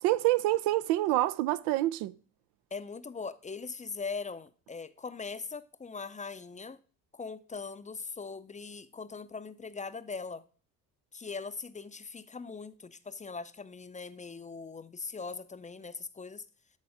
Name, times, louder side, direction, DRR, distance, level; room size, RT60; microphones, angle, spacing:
voice 1, 0.0-2.1, right 16 dB, 80° right, 0.5 m, -27 dB
voice 2, 2.7-6.8 7.1-10.4 11.1-16.5, left 4 dB, 20° left, 0.5 m, -41 dB
9.5 x 4.2 x 4.8 m
supercardioid pair, 65°, 40 cm